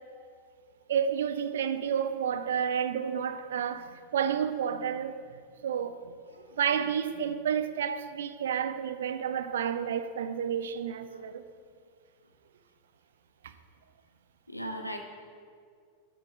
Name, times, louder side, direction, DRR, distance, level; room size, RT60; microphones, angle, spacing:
voice 1, 0.9-5.2 5.6-6.1 6.6-11.4 13.4-13.5, right 8 dB, 60° right, 0.4 m, -30 dB
voice 2, 14.5-15.0, equal, 90° left, 0.8 m, -38 dB
8.1 x 3.8 x 6.2 m
figure-of-eight pair, 90°, 0 cm